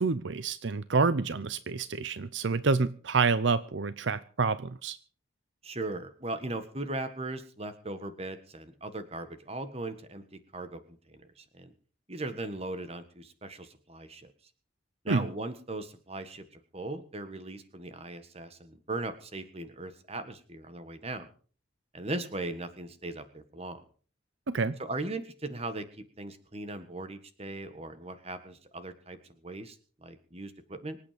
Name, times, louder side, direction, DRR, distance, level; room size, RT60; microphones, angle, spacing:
voice 1, 0.0-5.0 15.1-15.3 24.5-24.8, right 4 dB, 65° right, 0.6 m, -28 dB
voice 2, 5.6-10.2 10.5-11.7 12.1-14.3 15.0-21.3 21.9-23.8 24.8-29.2 29.4-31.0, right 2 dB, 30° right, 1.6 m, -38 dB
25.5 x 8.6 x 5.1 m
head